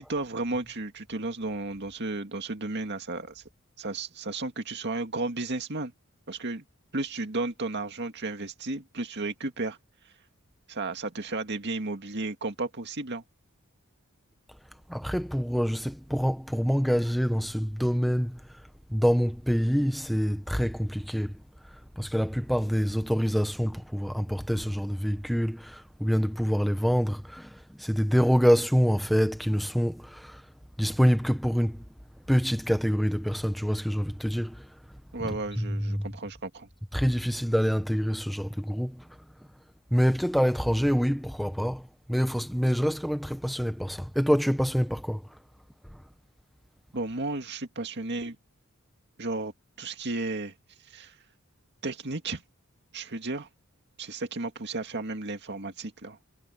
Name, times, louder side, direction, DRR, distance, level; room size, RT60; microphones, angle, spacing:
voice 1, 0.0-3.4 3.8-5.9 6.3-6.6 6.9-9.8 10.7-13.2 35.1-36.7 46.9-48.4 49.2-49.5 49.8-50.5 50.9-51.2 51.8-52.4 52.9-53.5 54.0-56.2, right 2 dB, 55° right, 2.2 m, -33 dB
voice 2, 14.9-18.4 18.9-21.4 22.0-30.4 30.8-31.8 32.3-34.6 35.6-36.1 36.9-39.0 39.9-45.2, equal, ahead, 1.4 m, -26 dB
head